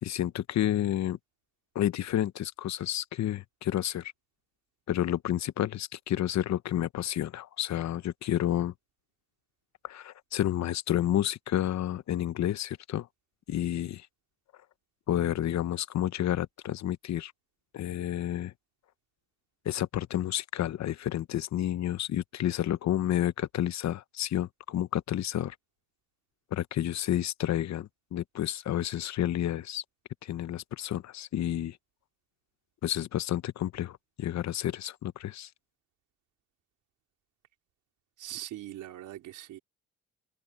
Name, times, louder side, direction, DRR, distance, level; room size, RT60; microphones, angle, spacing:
voice 1, 0.0-1.2 1.7-4.1 4.9-8.7 9.8-13.1 13.5-14.1 15.1-17.3 17.7-18.5 19.6-25.6 26.5-29.8 30.2-31.8 32.8-35.5, left 12 dB, 65° left, 0.9 m, -30 dB
voice 2, 38.2-39.6, right 13 dB, 85° right, 4.2 m, -41 dB
cardioid pair, 90°, 30 cm